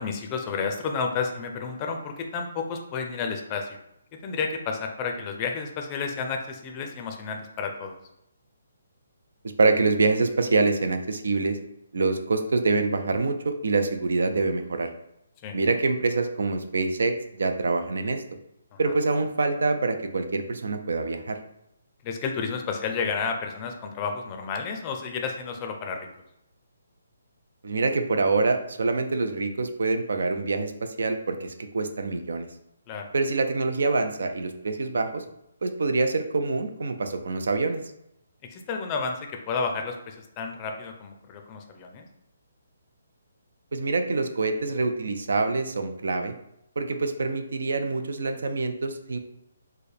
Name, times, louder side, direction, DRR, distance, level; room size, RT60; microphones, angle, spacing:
voice 1, 0.0-3.8 4.2-8.0 15.4-15.6 18.7-18.9 22.0-26.1 32.9-33.1 38.5-42.1, left 5 dB, 25° left, 3 dB, 0.5 m, -31 dB
voice 2, 9.6-11.6 11.9-14.9 15.5-18.2 18.8-21.4 27.6-32.5 33.1-35.2 35.6-37.8 43.7-46.3 46.8-49.2, right 3 dB, 70° right, 8 dB, 0.4 m, -25 dB
4.4 x 2.1 x 3.3 m, 0.80 s
hypercardioid pair, 155°, 0 cm